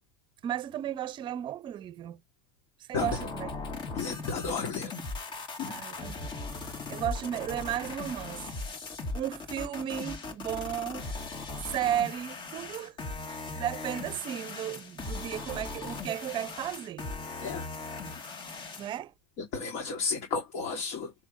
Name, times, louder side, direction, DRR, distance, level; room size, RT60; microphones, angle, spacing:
voice 1, 0.4-2.2 2.8-3.5 5.7-6.4 6.9-8.5 9.1-11.1 11.6-12.9 13.3-17.1 18.8-19.1, right 11 dB, 35° right, 0.7 m, -34 dB
sound 1, 3.0-19.0, left 3 dB, 35° left, 2.4 m, -39 dB
voice 2, 3.9-4.9 5.6-5.8 17.4-17.7 19.4-21.1, left 5 dB, 55° left, 2.9 m, -33 dB
7.0 x 3.4 x 5.1 m
supercardioid pair, 135°, 14 cm